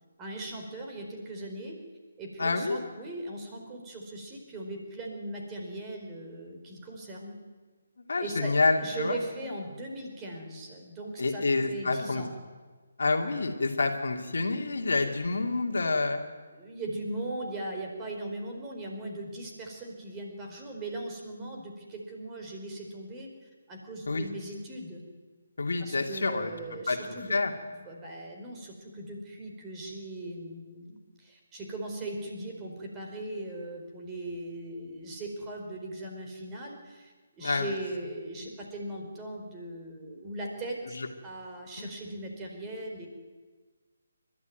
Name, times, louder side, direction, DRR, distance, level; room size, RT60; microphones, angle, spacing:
voice 1, 0.2-1.8 2.2-7.4 8.2-11.4 11.7-12.3 16.5-23.3 23.7-25.0 25.8-27.4 27.8-43.1, right 1 dB, 15° right, 1 dB, 4.4 m, -39 dB
voice 2, 2.4-2.8 8.0-9.2 11.2-12.2 13.0-16.2 24.1-24.3 25.6-26.5 26.9-27.0 27.3-27.5 37.4-37.8 40.9-41.1 41.8-41.9, left 3 dB, 55° left, 4 dB, 2.5 m, -28 dB
30.0 x 13.5 x 9.4 m, 1.4 s
figure-of-eight pair, 145°, 0 cm